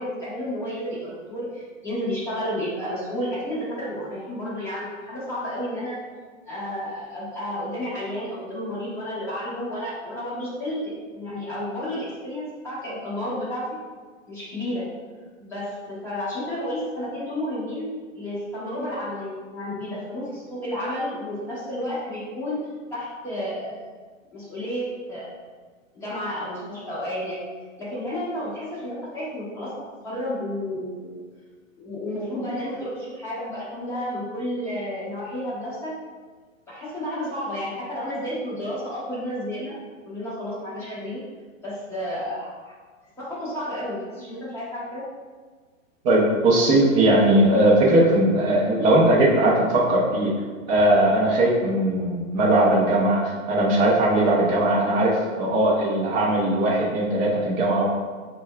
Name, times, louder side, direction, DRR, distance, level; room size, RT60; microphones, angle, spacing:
voice 1, 0.0-6.0 6.4-13.6 14.3-14.9 15.4-23.8 24.3-25.3 25.9-27.4 27.8-29.7 30.0-31.2 31.8-35.9 36.7-39.7 40.0-41.2 41.6-42.7 43.2-45.1, left 1 dB, 5° left, -10 dB, 1.0 m, -31 dB
voice 2, 46.0-50.3 50.7-57.8, right 1 dB, 25° right, -3 dB, 0.6 m, -19 dB
5.1 x 2.2 x 2.3 m, 1.5 s
hypercardioid pair, 140°, 41 cm